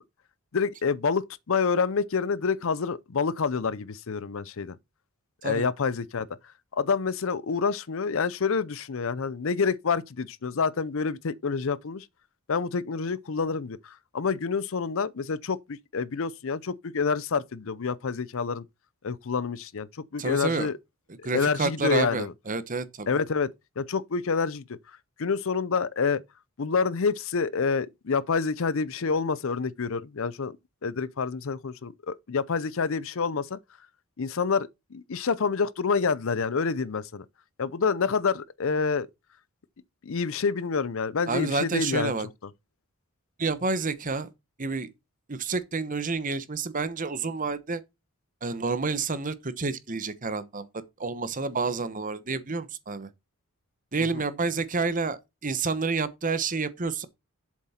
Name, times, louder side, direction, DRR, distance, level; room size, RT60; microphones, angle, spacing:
voice 1, 0.5-4.8 5.4-6.3 6.7-12.0 12.5-18.6 19.0-19.9 20.1-20.8 21.3-22.3 23.1-23.5 23.8-24.6 25.2-26.2 26.6-30.6 30.8-33.6 34.2-37.2 37.6-39.1 40.0-42.1 54.1-54.2, left 5 dB, 60° left, 0.6 m, -27 dB
voice 2, 20.2-20.7 21.2-23.2 41.3-42.3 43.4-44.3 44.6-44.9 45.3-47.8 48.4-53.1 53.9-57.1, right 4 dB, 35° right, 1.0 m, -29 dB
7.5 x 7.4 x 4.3 m
head